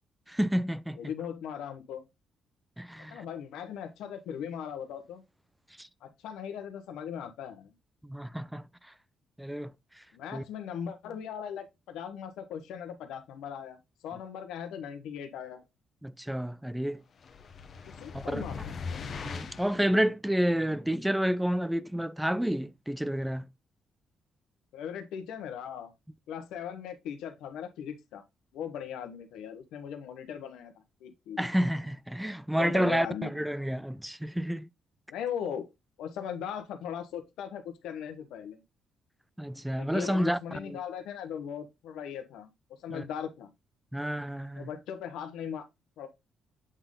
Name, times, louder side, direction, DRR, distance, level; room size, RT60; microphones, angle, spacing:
voice 1, 0.3-1.0 2.8-3.2 5.8-5.9 8.0-8.6 9.4-9.7 10.3-10.4 16.0-17.0 18.1-18.4 19.1-23.5 31.4-34.7 39.4-40.8 42.9-43.0 43.9-44.7, equal, 5° right, 0.4 m, -30 dB
voice 2, 0.9-2.0 3.1-5.2 6.0-7.7 10.1-15.6 17.9-19.1 24.7-25.9 26.3-28.2 28.5-30.7 31.0-31.5 32.5-33.3 35.1-35.7 36.0-38.6 39.8-42.5 42.8-43.5 44.5-45.7 46.0-46.1, left 8 dB, 90° left, 1.1 m, -39 dB
sound 1, 17.2-19.8, left 5 dB, 50° left, 1.1 m, -40 dB
7.9 x 3.8 x 3.7 m
cardioid pair, 90°, 0 cm